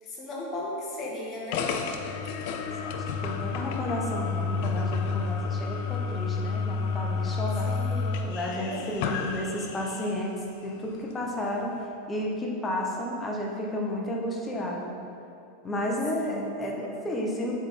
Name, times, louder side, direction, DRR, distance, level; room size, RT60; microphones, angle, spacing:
voice 1, 0.0-1.7 7.7-9.1 16.1-16.5, left 2 dB, 30° left, -3 dB, 1.3 m, -37 dB
sound 1, 1.5-10.3, left 4 dB, 55° left, 0.4 m, -30 dB
voice 2, 2.8-7.7 8.2-10.3 10.6-14.9 15.6-17.5, left 1 dB, 15° left, -1 dB, 0.8 m, -32 dB
7.4 x 3.5 x 4.2 m, 2.6 s
supercardioid pair, 150°, 0 cm